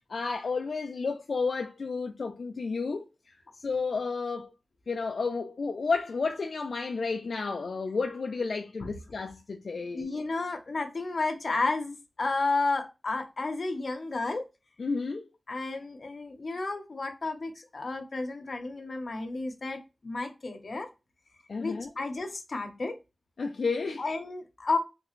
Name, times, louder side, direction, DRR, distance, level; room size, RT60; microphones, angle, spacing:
voice 1, 0.1-3.1 3.5-4.5 4.9-10.1 14.8-15.2 21.5-21.9 23.4-24.0, left 4 dB, 70° left, 0.3 m, -31 dB
voice 2, 9.9-14.4 15.5-20.9 21.6-22.9 24.0-24.8, left 3 dB, 50° left, 0.7 m, -32 dB
3.4 x 2.4 x 3.0 m
wide cardioid pair, 115°, 0 cm